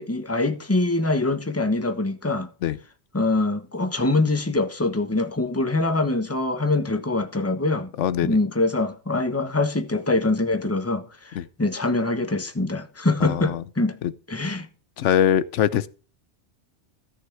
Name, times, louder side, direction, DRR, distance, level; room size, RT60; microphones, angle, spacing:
voice 1, 0.0-2.5 3.1-7.9 8.2-14.0 14.3-14.7, left 2 dB, 15° left, 1.2 m, -24 dB
voice 2, 8.0-8.4 11.3-11.5 13.2-13.6 14.0-14.1 15.0-15.9, left 9 dB, 90° left, 1.0 m, -22 dB
14.0 x 6.4 x 4.7 m
omnidirectional pair, 1.2 m